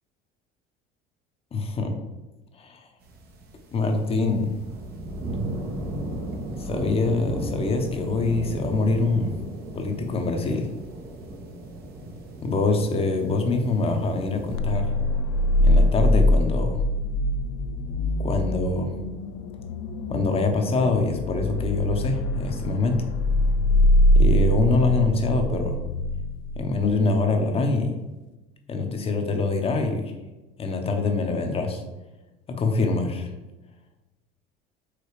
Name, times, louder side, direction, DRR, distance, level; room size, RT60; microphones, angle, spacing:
voice 1, 1.5-1.9 2.5-2.9 3.7-4.6 6.6-9.3 9.7-10.7 12.4-14.9 15.6-16.8 18.2-18.9 20.1-23.0 24.1-25.8 26.5-28.0 28.7-30.0 30.6-31.8 32.5-33.3, left 3 dB, 30° left, 5 dB, 1.0 m, -24 dB
sound 1, 3.0-14.6, right 1 dB, 55° right, 1.2 m, -35 dB
sound 2, 14.5-27.2, left 1 dB, 80° left, 0.5 m, -23 dB
5.0 x 3.8 x 4.9 m, 1.1 s
cardioid pair, 125°, 19 cm